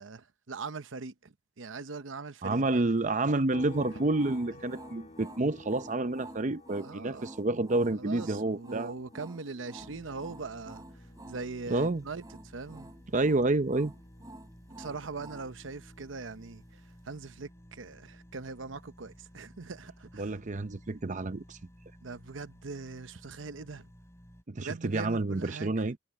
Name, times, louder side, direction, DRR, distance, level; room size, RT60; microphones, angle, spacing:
voice 1, 0.0-2.9 6.8-7.3 8.0-10.8 11.3-12.9 14.8-16.8 17.1-20.3 22.0-23.9 24.6-25.9, right 4 dB, 80° right, 0.9 m, -41 dB
voice 2, 2.4-8.9 11.7-12.0 13.1-13.9 20.2-21.6 24.5-26.0, right 2 dB, 40° right, 0.7 m, -29 dB
sound 1, 3.5-17.1 17.4-19.6, left 2 dB, 40° left, 2.4 m, -54 dB
sound 2, 3.7-15.5, right 1 dB, 20° right, 7.2 m, -49 dB
sound 3, 9.8-24.4, equal, 15° left, 3.4 m, -54 dB
head